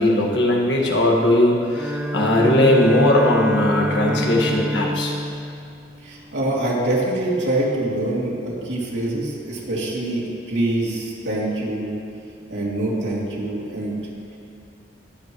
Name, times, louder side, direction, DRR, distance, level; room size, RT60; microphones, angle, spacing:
voice 1, 0.0-5.1, left 1 dB, 70° left, -1 dB, 1.6 m, -18 dB
Bowed string instrument, 1.7-6.8, equal, 10° right, 0.8 m, -27 dB
voice 2, 6.0-12.0 12.5-14.0, right 1 dB, 75° right, -5 dB, 2.8 m, -25 dB
20.5 x 8.0 x 3.1 m, 2.5 s
head